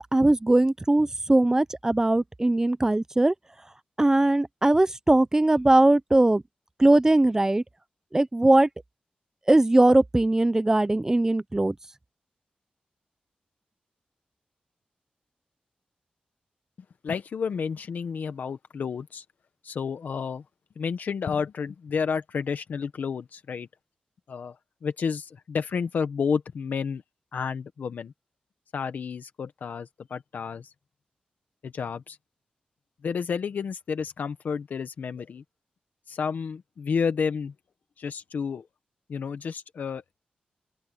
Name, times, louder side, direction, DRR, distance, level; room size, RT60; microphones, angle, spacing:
voice 1, 0.0-3.3 4.0-6.4 6.8-7.6 8.1-8.7 9.5-11.7, right 2 dB, 20° right, 0.7 m, -20 dB
voice 2, 17.0-19.2 19.6-20.4 20.8-23.7 24.3-27.0 27.3-28.1 28.7-30.7 31.6-32.2 33.0-35.4 36.1-37.5 38.0-38.7 39.1-40.0, left 6 dB, 80° left, 1.1 m, -31 dB
open air
wide cardioid pair, 85°, 3 cm